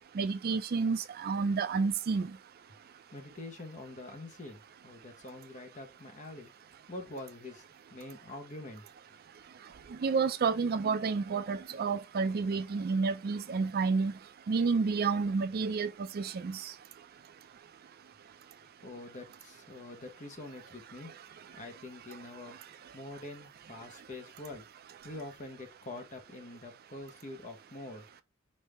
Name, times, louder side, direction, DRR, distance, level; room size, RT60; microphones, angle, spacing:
voice 1, 0.2-2.3 10.0-14.1 14.5-15.9 16.1-16.7, right 4 dB, 45° right, 0.4 m, -30 dB
voice 2, 3.1-6.5 6.9-8.8 18.8-21.1 21.6-22.6 22.9-24.7 25.0-28.1, left 2 dB, 35° left, 1.0 m, -45 dB
5.3 x 2.7 x 3.2 m
head